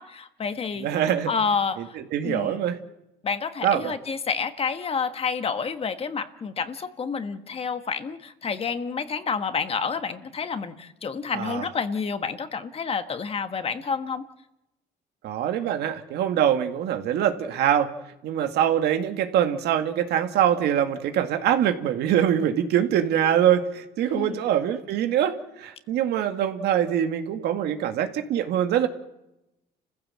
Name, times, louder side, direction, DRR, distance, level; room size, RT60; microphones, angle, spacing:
voice 1, 0.0-0.9 1.3-2.0 2.2-2.6 3.2-14.2 24.1-24.4, left 5 dB, 35° left, 9 dB, 1.5 m, -29 dB
voice 2, 0.8-1.3 1.8-2.8 3.6-4.0 11.3-11.7 15.2-17.9 18.2-28.9, right 10 dB, 75° right, 7 dB, 2.0 m, -24 dB
30.0 x 15.5 x 7.6 m, 0.92 s
cardioid pair, 110°, 17 cm